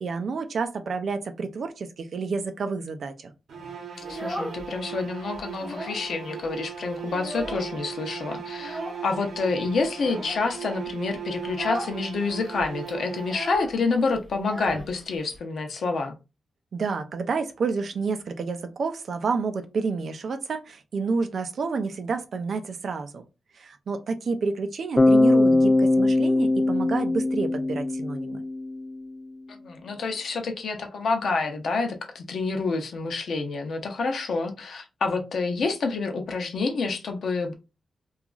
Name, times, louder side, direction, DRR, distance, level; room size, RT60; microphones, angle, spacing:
voice 1, 0.0-3.3 16.7-23.2 23.5-28.4, right 4 dB, 55° right, 0.4 m, -29 dB
sound 1, 3.5-13.7, right 8 dB, 75° right, 0.8 m, -38 dB
voice 2, 4.0-16.1 29.5-37.5, left 4 dB, 65° left, 0.6 m, -28 dB
Child speech kid speaking, 4.0-5.0 5.3-6.1 6.4-6.5 6.9-8.0 8.6-9.1 9.9-10.5 10.9-11.1 11.5-12.0 12.3-12.4 12.6-15.4, equal, 10° right, 0.9 m, -36 dB
Bass guitar, 25.0-28.9, left 2 dB, 15° left, 0.4 m, -21 dB
2.8 x 2.4 x 2.3 m
wide cardioid pair, 150°, 0 cm